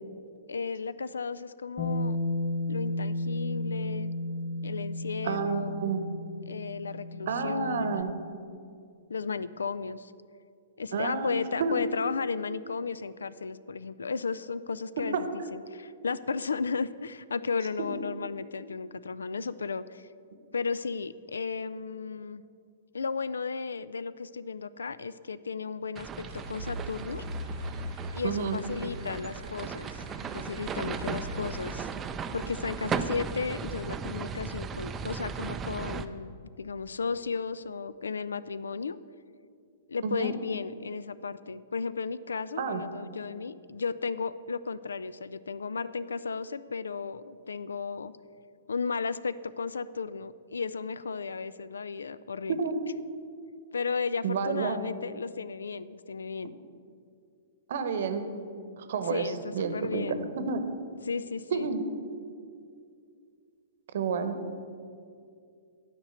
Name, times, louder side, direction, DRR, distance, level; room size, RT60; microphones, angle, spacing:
voice 1, 0.5-2.2 2.7-4.1 4.6-5.8 6.5-8.0 9.1-10.1 10.8-20.1 20.5-22.4 22.9-27.2 28.1-30.0 30.3-31.9 32.3-39.0 39.9-48.1 48.7-52.6 53.7-56.5 59.0-60.2 61.0-61.7, left 5 dB, 75° left, 16 dB, 0.3 m, -34 dB
Bass guitar, 1.8-8.0, left 1 dB, 40° left, 1.4 m, -33 dB
voice 2, 5.2-6.0 7.3-8.1 10.9-11.8 17.8-18.0 28.2-28.6 40.0-40.3 42.6-42.8 52.5-52.7 54.2-54.8 57.7-58.2 58.8-60.0 60.4-60.6 61.5-61.8 63.9-64.4, right 5 dB, 55° right, 8 dB, 0.9 m, -30 dB
sound 1, 26.0-36.1, right 6 dB, 20° right, 0.4 m, -37 dB
sound 2, 26.2-31.8, equal, 85° right, 0.4 m, -41 dB
9.9 x 5.1 x 7.8 m, 2.4 s
figure-of-eight pair, 110°, 0 cm